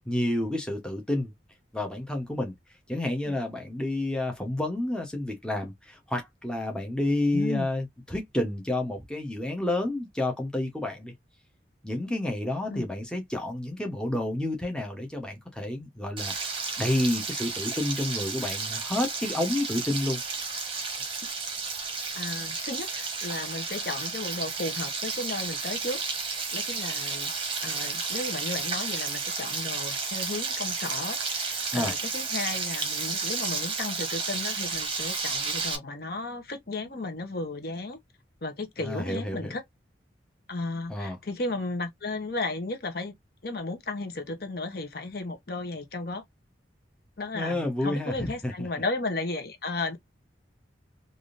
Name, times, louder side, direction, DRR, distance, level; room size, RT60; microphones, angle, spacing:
voice 1, 0.0-1.3 1.7-2.5 2.9-11.1 11.8-20.2 31.7-32.0 38.8-39.5 40.9-41.2 47.3-48.7, left 1 dB, 5° left, 0.8 m, -30 dB
voice 2, 7.3-7.7 12.7-12.9 22.1-26.0 26.5-27.3 27.6-38.0 38.4-39.6 40.5-43.1 43.4-46.2 47.2-50.0, left 2 dB, 55° left, 0.8 m, -34 dB
Frying (food), 16.2-35.8, right 4 dB, 25° right, 1.0 m, -32 dB
3.5 x 2.6 x 2.5 m
head